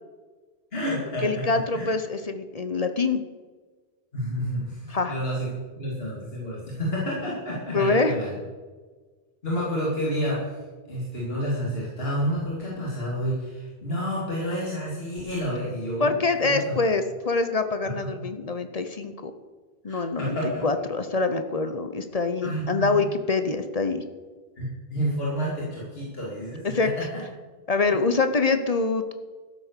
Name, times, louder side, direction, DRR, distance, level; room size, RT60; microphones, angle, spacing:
voice 1, 0.7-1.4 1.7-1.9 4.1-8.4 9.4-10.5 10.9-16.7 17.8-17.9 19.9-20.7 22.4-23.0 24.6-27.2 27.9-28.0, equal, 75° left, -6 dB, 3.0 m, -30 dB
voice 2, 1.2-3.2 4.9-5.1 7.7-8.1 16.0-19.3 19.8-20.4 20.6-24.0 26.6-26.9 27.7-29.1, left 3 dB, 40° left, 9 dB, 0.8 m, -25 dB
12.5 x 7.6 x 6.7 m, 1.4 s
omnidirectional pair, 1.0 m